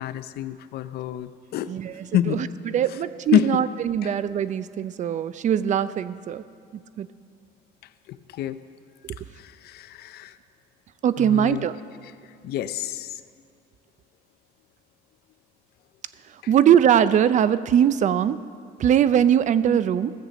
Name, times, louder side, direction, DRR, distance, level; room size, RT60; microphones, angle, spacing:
voice 1, 0.0-1.7 2.1-2.5 2.9-3.0 3.3-3.6 4.0-4.1 8.3-8.6 9.4-10.3 11.2-11.7 12.4-13.1, left 11 dB, 70° left, 12 dB, 0.6 m, -27 dB
voice 2, 1.7-6.4 7.0-7.1 11.0-11.8 16.5-18.4 18.8-20.1, right 9 dB, 45° right, 15 dB, 0.5 m, -21 dB
15.5 x 6.7 x 7.4 m, 2.2 s
cardioid pair, 110°, 17 cm